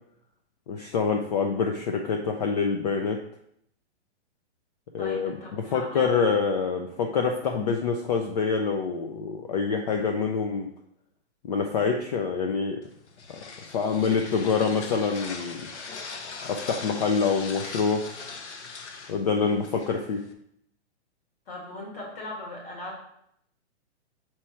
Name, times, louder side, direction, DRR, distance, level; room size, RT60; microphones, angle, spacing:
voice 1, 0.7-3.2 4.9-10.7 11.4-12.8 13.7-15.7 16.5-18.0 19.1-20.2, left 5 dB, 35° left, 3 dB, 0.4 m, -26 dB
voice 2, 5.0-6.2 21.5-23.0, left 2 dB, 55° left, -2 dB, 2.4 m, -39 dB
sound 1, 12.8-20.3, left 4 dB, 75° left, 1.0 m, -40 dB
4.9 x 4.4 x 4.3 m, 0.72 s
hypercardioid pair, 155°, 35 cm